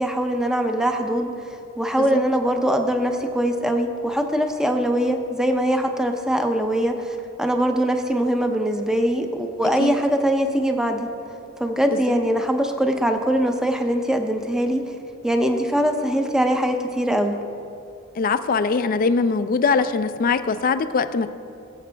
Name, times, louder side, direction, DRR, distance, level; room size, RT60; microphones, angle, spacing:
voice 1, 0.0-1.3 1.8-11.1 11.6-14.8 15.2-17.4, equal, 5° right, 4 dB, 0.6 m, -22 dB
voice 2, 18.2-21.3, left 4 dB, 45° left, 11 dB, 0.4 m, -22 dB
21.0 x 7.8 x 2.3 m, 2.5 s
head